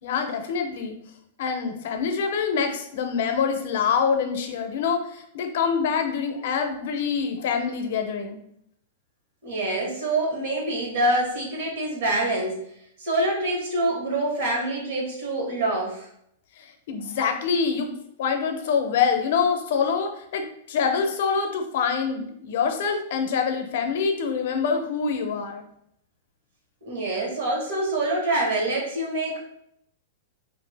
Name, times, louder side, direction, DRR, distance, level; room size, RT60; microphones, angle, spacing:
voice 1, 0.0-0.9 1.4-8.4 16.6-17.9 18.2-25.6, left 6 dB, 60° left, 5 dB, 0.5 m, -25 dB
voice 2, 9.4-12.6 13.0-16.1 26.8-29.4, right 2 dB, 65° right, -2 dB, 1.2 m, -26 dB
2.7 x 2.5 x 3.3 m, 0.73 s
supercardioid pair, 155°, 0 cm